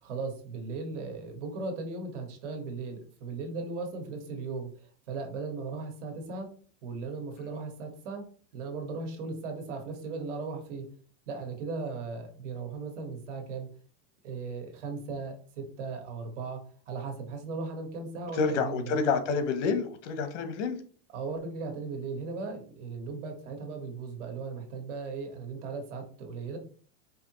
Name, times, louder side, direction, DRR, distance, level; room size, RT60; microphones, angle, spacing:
voice 1, 0.0-6.5 6.8-8.2 8.5-10.8 11.3-13.7 14.2-16.6 16.9-19.0 21.1-26.6, right 4 dB, 80° right, 3 dB, 1.5 m, -37 dB
voice 2, 18.3-20.8, left 5 dB, 80° left, 9 dB, 1.0 m, -28 dB
4.9 x 2.8 x 3.0 m, 0.43 s
supercardioid pair, 170°, 36 cm